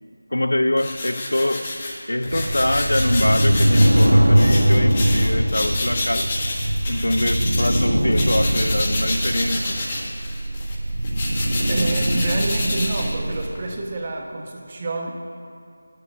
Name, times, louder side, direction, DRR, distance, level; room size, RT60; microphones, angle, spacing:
voice 1, 0.3-1.8 2.1-6.4 6.9-9.8, left 1 dB, 85° left, 0.5 m, -24 dB
sound 1, 0.8-13.6, left 2 dB, 30° left, 1.3 m, -29 dB
sound 2, 2.3-13.6, right 1 dB, 90° right, 1.1 m, -21 dB
voice 2, 11.7-15.1, right 2 dB, 30° right, 1.1 m, -28 dB
7.3 x 6.6 x 7.3 m
figure-of-eight pair, 170°, 0 cm